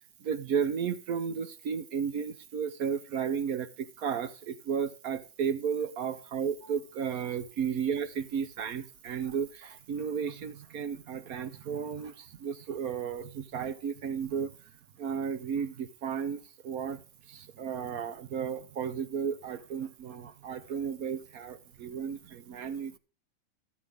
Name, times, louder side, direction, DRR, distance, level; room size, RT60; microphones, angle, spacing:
voice 1, 0.2-14.5 15.0-17.0 17.3-23.0, right 7 dB, 60° right, 1.1 m, -33 dB
13.5 x 8.5 x 3.5 m
omnidirectional pair, 2.1 m